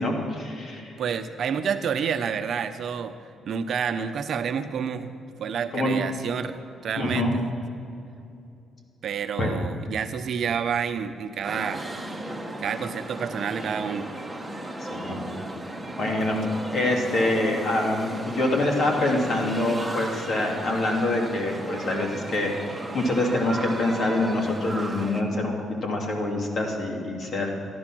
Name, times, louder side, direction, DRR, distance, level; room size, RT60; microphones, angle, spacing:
voice 1, 0.0-0.9 5.7-5.9 7.0-7.3 9.4-9.5 14.9-15.2 16.0-16.4 16.7-22.5 22.9-25.5 25.8-27.5, left 2 dB, 55° left, 1 dB, 2.6 m, -25 dB
voice 2, 1.0-3.2 3.4-5.1 5.4-7.4 9.0-11.9 12.6-14.1, right 7 dB, 60° right, 9 dB, 0.8 m, -29 dB
sound 1, 11.4-25.2, right 1 dB, 5° right, 1.3 m, -35 dB
14.0 x 11.0 x 6.1 m, 2.6 s
cardioid pair, 90°, 0 cm